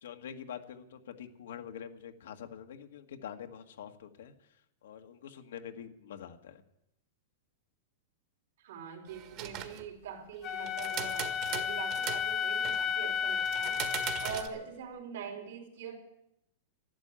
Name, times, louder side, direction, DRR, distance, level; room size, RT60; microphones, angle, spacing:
voice 1, 0.0-4.3 4.8-6.6, left 8 dB, 80° left, 6 dB, 1.6 m, -45 dB
voice 2, 8.6-16.0, right 7 dB, 75° right, 3 dB, 3.8 m, -43 dB
sound 1, 9.1-9.9 10.7-12.2 12.6-12.9 13.4-14.5, right 10 dB, 40° right, 1.6 m, -39 dB
Wind instrument woodwind instrument, 10.4-14.5, left 7 dB, 30° left, 0.8 m, -33 dB
12.0 x 11.5 x 8.9 m, 0.85 s
supercardioid pair, 150°, 0 cm